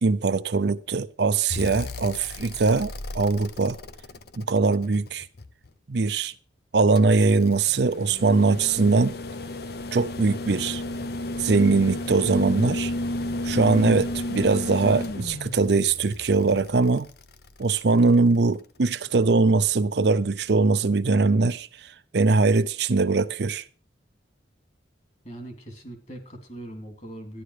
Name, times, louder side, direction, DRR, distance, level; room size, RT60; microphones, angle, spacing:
voice 1, 0.0-3.8 4.4-5.3 5.9-6.3 6.7-9.2 9.9-10.8 11.4-12.9 13.4-17.1 17.6-23.7, right 3 dB, 60° right, 0.6 m, -21 dB
sound 1, 1.5-5.7 7.0-18.1 19.7-19.8, left 1 dB, 55° left, 0.8 m, -33 dB
voice 2, 25.2-27.4, right 1 dB, 40° left, 3.1 m, -40 dB
13.0 x 10.5 x 4.9 m
head